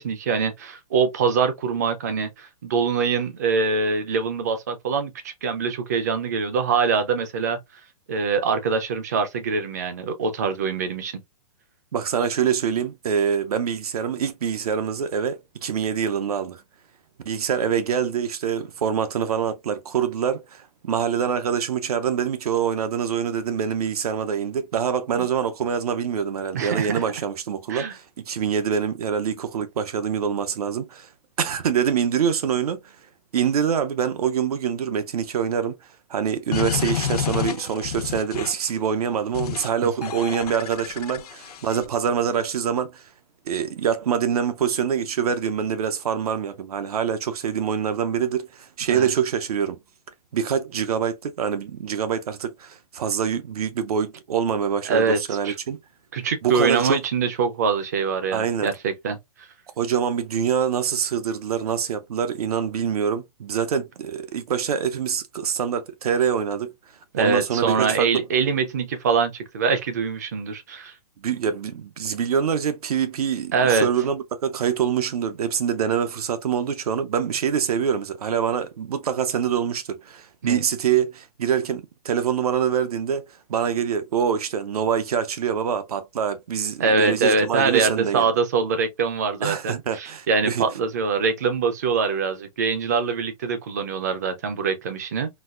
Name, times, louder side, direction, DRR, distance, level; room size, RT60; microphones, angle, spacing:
voice 1, 0.0-7.6 8.1-11.2 25.1-25.3 26.5-27.0 27.7-27.9 39.8-40.1 48.9-49.1 54.9-55.2 55.4-55.6 56.1-59.2 67.1-70.9 73.5-73.9 80.4-80.6 86.8-95.3, right 5 dB, 25° right, 0.4 m, -24 dB
voice 2, 11.9-16.6 17.3-31.1 31.4-33.0 33.3-35.7 36.1-43.1 43.5-49.8 50.3-55.8 56.4-57.0 58.3-58.7 59.8-66.7 67.2-68.1 71.2-88.3 89.4-90.6, right 7 dB, 75° right, 0.6 m, -25 dB
sound 1, 36.5-38.7 39.3-39.7 40.0-41.9, left 9 dB, 80° left, 0.7 m, -29 dB
4.0 x 2.3 x 2.3 m
hypercardioid pair, 170°, 20 cm